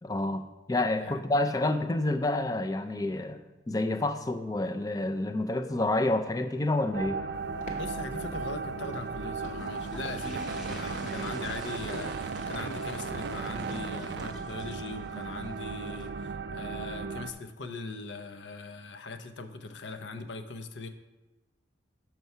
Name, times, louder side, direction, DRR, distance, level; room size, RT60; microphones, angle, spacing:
voice 1, 0.0-7.2, left 2 dB, 20° left, 8 dB, 0.4 m, -29 dB
sound 1, 6.9-17.3, right 4 dB, 60° right, 0.3 m, -36 dB
sound 2, 7.6-7.9 8.2-8.5 8.8-9.1 9.4-9.7 10.0-10.3 10.6-10.9 11.3-11.6 11.8-12.2 12.5-12.8 13.1-13.4 13.7-14.0 14.3-14.4, left 1 dB, 40° left, 0.9 m, -46 dB
voice 2, 7.8-20.9, left 3 dB, 70° left, 7 dB, 0.6 m, -40 dB
sound 3, 9.5-16.1, equal, 5° right, 0.8 m, -48 dB
6.8 x 4.5 x 5.4 m, 1.1 s
head